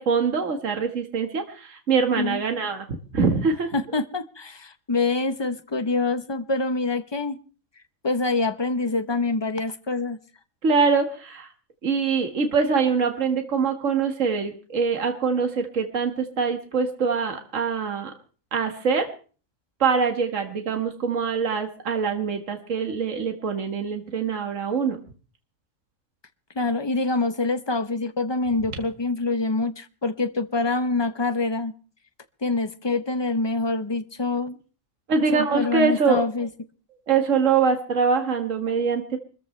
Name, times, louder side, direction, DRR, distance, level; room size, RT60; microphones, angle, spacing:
voice 1, 0.0-2.9 3.1-3.7 10.6-11.5 11.8-18.1 18.5-19.1 19.8-25.0 35.1-36.2 37.1-39.2, right 5 dB, 65° right, 2.1 m, -24 dB
voice 2, 3.7-7.4 8.0-10.2 26.6-31.7 32.4-34.6 35.3-36.5, left 3 dB, 25° left, 0.8 m, -25 dB
25.0 x 14.5 x 3.3 m
omnidirectional pair, 1.4 m